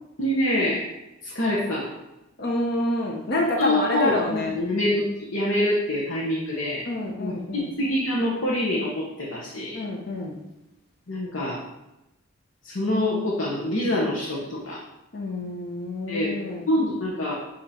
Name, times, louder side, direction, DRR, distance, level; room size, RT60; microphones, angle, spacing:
voice 1, 0.2-0.9 1.2-1.9 3.4-6.9 7.2-9.8 11.1-11.6 12.6-14.8 16.1-16.4 16.7-17.4, left 1 dB, 90° left, -4 dB, 1.1 m, -25 dB
voice 2, 2.4-4.5 6.9-7.7 9.7-10.4 15.1-16.6, left 1 dB, 50° left, -1 dB, 0.7 m, -27 dB
7.6 x 2.9 x 4.3 m, 0.97 s
head